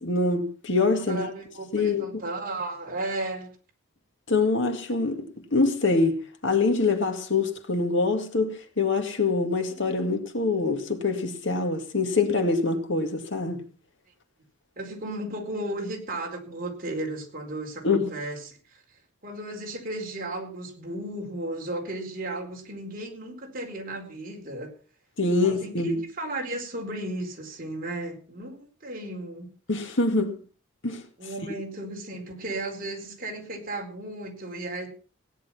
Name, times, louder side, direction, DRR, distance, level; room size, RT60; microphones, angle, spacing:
voice 1, 0.0-1.3 1.7-2.2 4.3-13.6 17.8-18.1 25.2-26.0 29.7-30.4 30.8-31.0, left 3 dB, 60° left, 2.1 m, -25 dB
voice 2, 1.1-3.5 14.8-18.8 19.2-24.7 25.4-29.5 31.2-34.9, right 2 dB, 40° right, 4.4 m, -35 dB
16.5 x 10.5 x 5.8 m
head